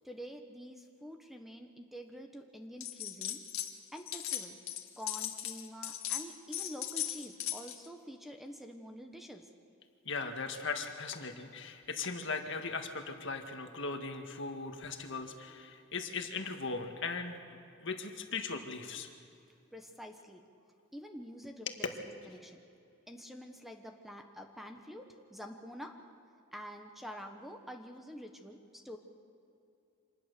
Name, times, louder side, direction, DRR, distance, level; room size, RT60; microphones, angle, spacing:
voice 1, 0.0-3.4 3.9-4.6 5.0-9.5 19.7-20.4 20.9-21.8 22.3-22.6 23.1-26.0 26.5-29.0, equal, ahead, 4 dB, 1.2 m, -47 dB
sound 1, 2.8-3.7 4.0-7.9, left 12 dB, 75° left, 1.7 m, -38 dB
voice 2, 10.1-17.4 17.8-19.1 21.7-21.8, left 4 dB, 60° left, 5 dB, 1.8 m, -38 dB
26.0 x 19.5 x 6.9 m, 2.7 s
head